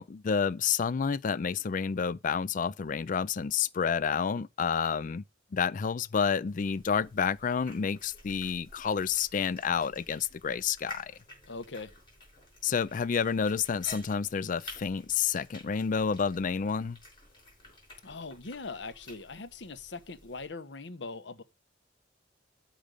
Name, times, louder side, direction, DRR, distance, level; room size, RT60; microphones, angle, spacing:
voice 1, 0.0-5.2 5.5-11.2 12.6-17.0, left 6 dB, 45° left, 0.4 m, -29 dB
sound 1, 6.5-20.5, left 2 dB, 25° left, 6.1 m, -52 dB
voice 2, 11.4-11.9 18.0-21.4, left 3 dB, 70° left, 0.9 m, -41 dB
7.6 x 5.2 x 6.6 m
head